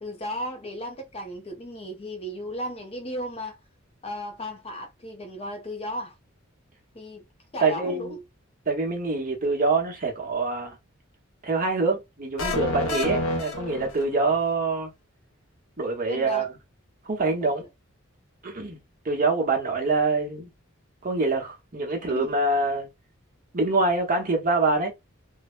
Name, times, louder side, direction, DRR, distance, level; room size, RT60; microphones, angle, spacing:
voice 1, 0.0-3.6 4.0-6.1 6.9-7.3 7.5-8.2 16.1-16.5 17.4-17.5 22.1-22.3, equal, 30° left, 0.5 m, -35 dB
voice 2, 7.6-8.1 8.7-10.8 11.4-14.9 15.8-16.5 17.0-17.6 18.4-18.8 19.0-20.5 21.0-22.9 23.5-24.9, right 3 dB, 40° right, 0.9 m, -25 dB
sound 1, 12.4-14.4, left 2 dB, 80° left, 0.7 m, -28 dB
2.7 x 2.1 x 2.4 m
head